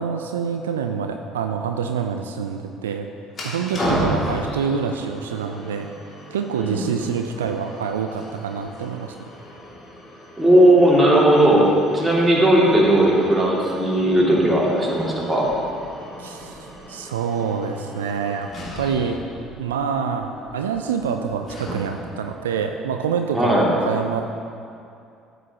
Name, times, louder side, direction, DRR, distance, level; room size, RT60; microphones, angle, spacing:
voice 1, 0.0-3.1 3.4-5.9 6.3-9.2 16.2-18.5 18.8-19.2 19.6-24.2, right 6 dB, 75° right, 5 dB, 0.4 m, -26 dB
sound 1, 3.3-22.2, equal, 35° left, 2.5 m, -36 dB
voice 2, 10.4-15.5 23.3-23.7, right 1 dB, 10° right, -4 dB, 2.5 m, -17 dB
13.5 x 8.0 x 3.0 m, 2.5 s
figure-of-eight pair, 55°, 0 cm